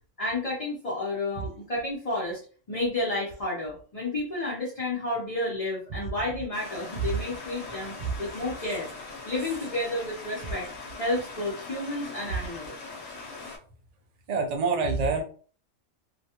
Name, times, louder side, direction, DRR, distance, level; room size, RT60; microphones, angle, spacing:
voice 1, 0.2-2.4 2.7-8.9 9.2-10.7 11.0-12.7, left 2 dB, 35° left, -6 dB, 0.6 m, -31 dB
Stream, 6.5-13.6, left 3 dB, 60° left, 0.9 m, -41 dB
voice 2, 14.3-15.2, right 4 dB, 85° right, 2 dB, 0.3 m, -27 dB
2.4 x 2.3 x 2.8 m, 0.41 s
omnidirectional pair, 1.4 m